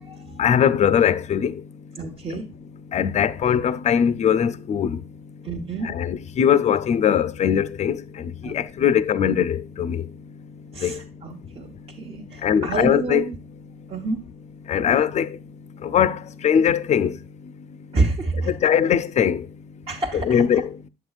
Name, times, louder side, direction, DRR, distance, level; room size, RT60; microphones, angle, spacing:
voice 1, 0.4-1.5 2.9-5.0 5.8-10.0 10.8-11.0 12.4-13.3 14.7-15.4 15.8-17.1 18.4-19.4 20.1-20.7, left 8 dB, 40° left, 0.5 m, -21 dB
voice 2, 2.0-2.4 5.4-5.9 8.4-8.9 10.7-11.7 12.0-13.3 13.9-14.2 17.9-18.5 19.9-20.6, right 3 dB, 35° right, 1.1 m, -28 dB
7.9 x 7.9 x 2.4 m
cardioid pair, 110°, 17 cm